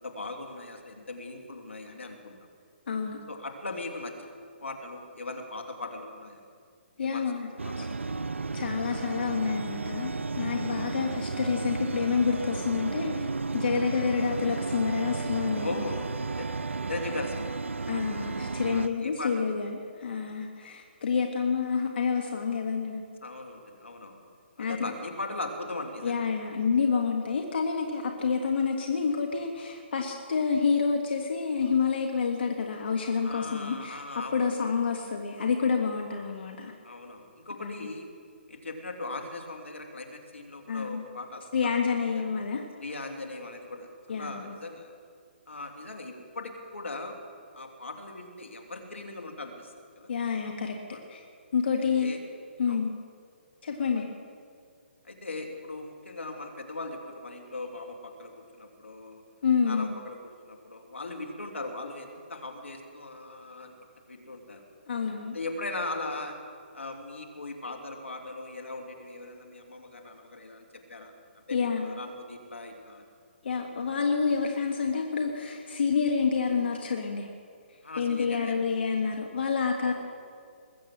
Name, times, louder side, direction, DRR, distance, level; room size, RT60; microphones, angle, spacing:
voice 1, 0.0-2.3 3.3-4.3 4.6-6.4 7.0-7.3 7.6-8.1 10.7-10.9 15.6-16.1 16.4-16.5 16.9-17.6 18.7-19.5 23.2-24.2 24.6-26.2 33.2-34.6 36.8-38.1 38.5-42.3 42.8-44.9 45.5-47.2 47.5-50.1 50.9-51.1 52.0-52.2 52.7-52.8 55.0-59.2 59.6-63.7 64.1-64.6 65.3-66.4 66.7-71.1 71.5-73.0 77.8-78.6 79.8-79.9, left 2 dB, 85° left, 3 dB, 2.5 m, -39 dB
voice 2, 2.9-3.2 7.0-7.5 7.8-7.9 8.5-13.1 13.5-15.8 17.9-23.0 24.6-24.9 26.0-34.0 34.3-36.7 37.6-37.8 40.7-41.0 41.5-42.6 44.1-44.5 50.1-50.7 51.1-51.2 51.5-52.1 52.6-52.9 53.6-54.0 59.4-59.9 64.9-65.3 71.5-71.9 73.4-77.3 78.0-79.9, left 5 dB, 60° left, 2 dB, 1.6 m, -28 dB
sound 1, 7.6-18.9, right 3 dB, 90° right, 0.4 m, -33 dB
21.0 x 7.8 x 7.6 m, 2.2 s
figure-of-eight pair, 140°, 7 cm